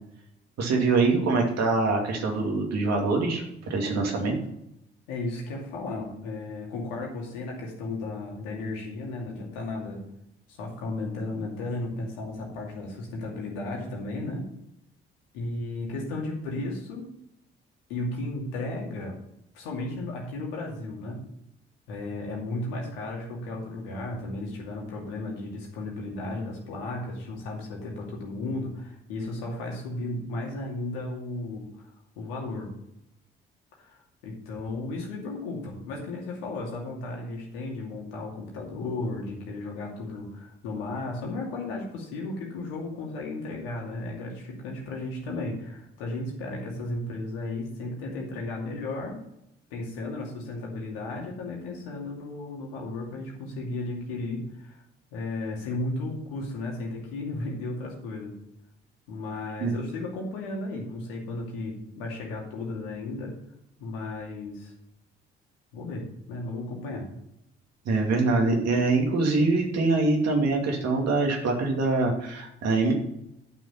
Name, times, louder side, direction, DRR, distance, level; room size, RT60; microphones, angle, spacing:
voice 1, 0.6-3.4 3.7-4.4 59.6-59.7 67.8-72.9, right 3 dB, 60° right, 1 dB, 2.8 m, -24 dB
voice 2, 5.1-10.0 10.5-14.5 15.3-17.1 17.9-19.2 19.5-21.3 21.9-31.8 32.2-32.7 33.8-49.2 49.7-54.8 55.1-58.4 59.1-63.4 63.8-64.7 65.7-67.1, left 2 dB, 80° left, -1 dB, 2.5 m, -34 dB
10.5 x 6.3 x 5.7 m, 0.81 s
hypercardioid pair, 40°, 29 cm